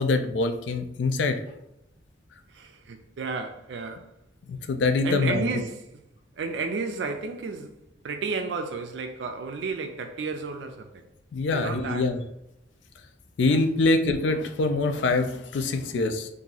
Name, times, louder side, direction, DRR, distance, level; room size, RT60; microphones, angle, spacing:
voice 1, 0.0-1.4 4.5-5.4 11.3-12.2 13.4-16.3, left 3 dB, 80° left, 0.4 m, -24 dB
voice 2, 2.5-4.1 5.0-5.8 6.4-7.7 8.0-10.9 11.5-12.1, right 4 dB, 70° right, 0.4 m, -32 dB
2.8 x 2.5 x 3.8 m
head